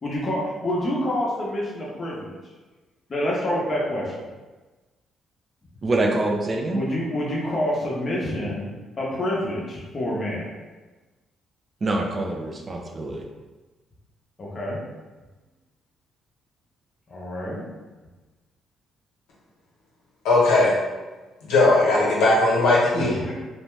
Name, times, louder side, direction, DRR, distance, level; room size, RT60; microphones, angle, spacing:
voice 1, 0.0-2.4 3.1-4.3 6.7-8.7 9.0-10.5 14.4-14.8 17.1-17.6 22.9-23.4, left 1 dB, 40° left, -4 dB, 0.8 m, -27 dB
voice 2, 5.8-6.8 11.8-13.2, right 2 dB, 35° right, 1 dB, 0.5 m, -25 dB
voice 3, 20.2-20.7 21.5-23.1, left 2 dB, 90° left, -6 dB, 0.9 m, -18 dB
2.6 x 2.1 x 3.2 m, 1.2 s
cardioid pair, 90°, 0 cm